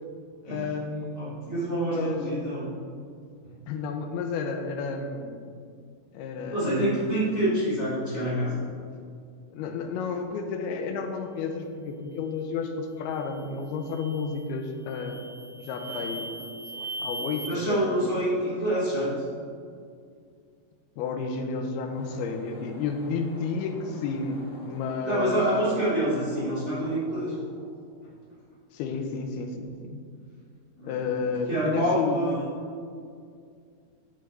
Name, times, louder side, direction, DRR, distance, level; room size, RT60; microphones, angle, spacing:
voice 1, 0.4-1.3 1.6-2.2 3.7-5.5 6.1-6.7 9.5-15.2 15.6-16.3 16.7-18.0 21.0-25.4 28.7-30.0 30.8-32.3, left 4 dB, 85° left, 5 dB, 2.6 m, -31 dB
voice 2, 1.2-2.7 3.4-3.5 6.5-8.6 15.9-16.0 17.5-19.1 25.0-27.3 30.8-31.0 31.5-32.5, right 1 dB, 20° right, -9 dB, 2.2 m, -27 dB
sound 1, 13.1-13.4 13.8-14.4 14.9-17.5, right 2 dB, 75° right, 2.5 m, -38 dB
sound 2, 21.8-28.3, left 1 dB, 60° left, 3.0 m, -47 dB
10.5 x 8.4 x 3.3 m, 2.3 s
omnidirectional pair, 4.5 m